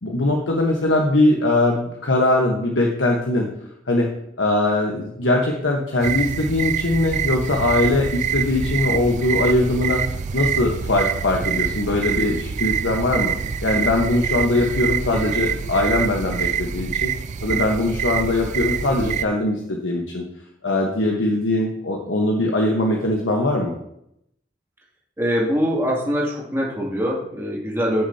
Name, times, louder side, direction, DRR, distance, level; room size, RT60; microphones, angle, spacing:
voice 1, 0.0-3.5 3.9-4.1 4.4-10.0 10.3-13.3 13.6-17.1 17.4-20.2 20.6-23.7, left 2 dB, 85° left, 0 dB, 1.2 m, -21 dB
sound 1, 6.0-19.3, right 8 dB, 40° right, 0.3 m, -26 dB
sound 2, 8.3-16.8, right 1 dB, 85° right, 1.2 m, -37 dB
voice 2, 25.2-28.1, equal, 15° right, -4 dB, 2.6 m, -23 dB
14.5 x 6.6 x 2.8 m, 0.77 s
head